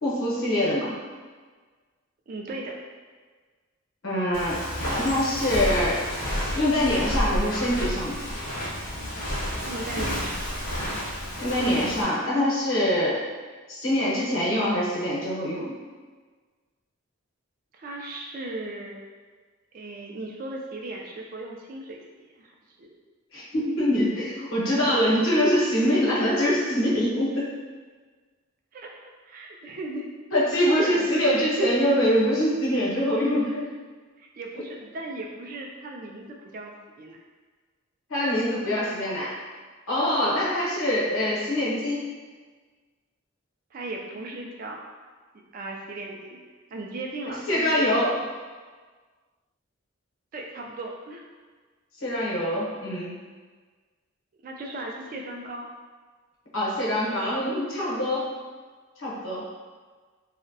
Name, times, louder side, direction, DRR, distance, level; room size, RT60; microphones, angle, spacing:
voice 1, 0.0-0.9 4.0-4.6 4.9-6.0 6.5-8.2 11.4-13.2 13.7-15.7 23.3-27.4 30.3-33.6 38.1-39.3 39.9-42.1 47.3-48.1 52.0-53.2 56.5-58.3 59.0-59.4, equal, 75° left, -6 dB, 0.8 m, -24 dB
voice 2, 2.3-2.8 9.7-10.4 17.7-19.0 19.7-22.9 28.7-30.1 30.7-31.4 34.2-37.2 43.7-44.8 45.3-46.4 46.7-47.9 50.3-51.2 54.4-55.7, right 2 dB, 45° right, 0 dB, 0.3 m, -37 dB
Walk footsteps, 4.3-12.0, equal, 45° left, 0.5 m, -30 dB
2.6 x 2.0 x 2.6 m, 1.4 s
head